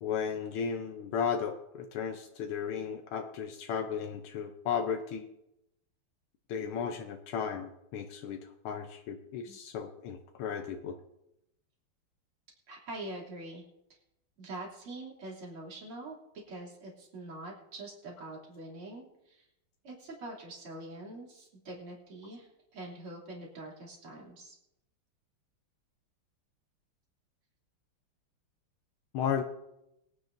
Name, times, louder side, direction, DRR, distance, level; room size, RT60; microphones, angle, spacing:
voice 1, 0.0-5.2 6.5-11.0 29.1-29.4, left 7 dB, 80° left, 5 dB, 1.6 m, -35 dB
voice 2, 12.7-13.6 14.4-16.1 16.5-19.4 19.8-24.6, right 2 dB, 80° right, -3 dB, 3.9 m, -44 dB
22.5 x 10.0 x 2.6 m, 0.86 s
omnidirectional pair, 2.3 m